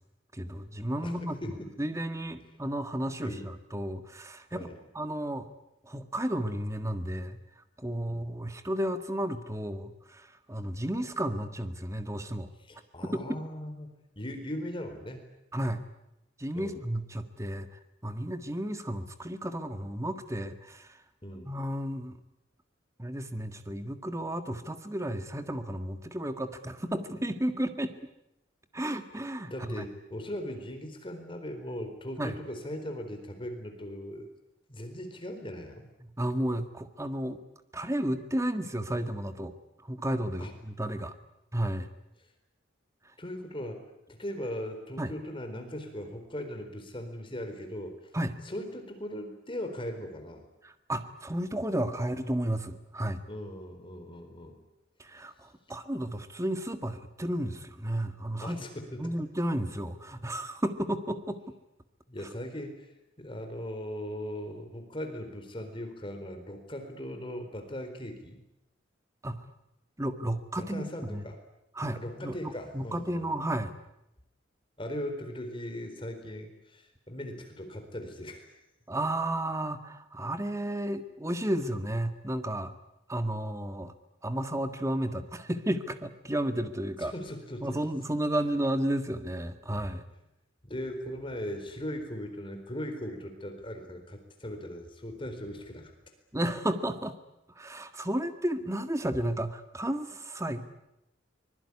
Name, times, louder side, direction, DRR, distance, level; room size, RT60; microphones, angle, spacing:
voice 1, 0.3-1.4 1.8-5.5 5.8-7.4 7.8-12.5 13.1-13.4 15.5-15.8 16.4-17.7 18.0-20.9 21.5-22.1 23.0-27.9 28.7-29.8 32.2-32.3 36.0-37.4 37.7-39.5 39.9-41.1 41.5-41.9 45.0-45.1 48.1-48.3 50.6-53.2 55.0-58.6 59.0-61.4 69.2-69.4 70.0-71.2 71.8-73.7 78.9-82.7 83.1-83.9 84.2-87.1 87.6-90.1 96.3-97.1 97.6-100.8, right 1 dB, 15° right, 9 dB, 1.7 m, -32 dB
voice 2, 1.0-1.7 3.2-3.5 4.5-4.8 8.1-8.3 12.6-13.9 14.2-15.3 16.5-16.9 21.2-21.5 29.5-34.3 34.7-35.9 40.4-40.5 43.2-43.8 44.1-47.9 48.4-50.5 53.3-54.6 58.4-59.1 62.1-62.9 63.2-68.4 70.6-71.4 72.0-73.3 74.8-78.6 87.0-87.8 89.7-89.9 90.6-95.9, equal, 25° left, 6 dB, 4.3 m, -39 dB
24.5 x 22.0 x 9.8 m, 0.88 s
head